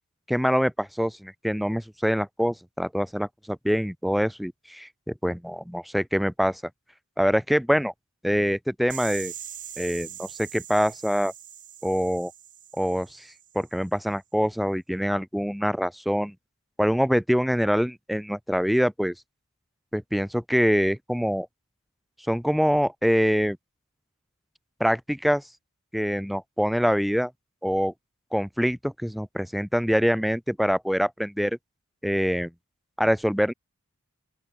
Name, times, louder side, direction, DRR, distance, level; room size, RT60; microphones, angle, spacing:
voice 1, 0.3-6.6 7.2-7.9 8.2-9.3 9.8-11.3 11.8-12.3 12.8-13.3 13.5-16.3 16.8-19.1 19.9-21.5 22.3-23.6 24.8-25.4 25.9-27.3 27.6-27.9 28.3-31.6 32.0-32.5 33.0-33.5, equal, ahead, 0.4 m, -25 dB
sound 1, 8.9-13.7, right 10 dB, 40° right, 7.2 m, -42 dB
open air
head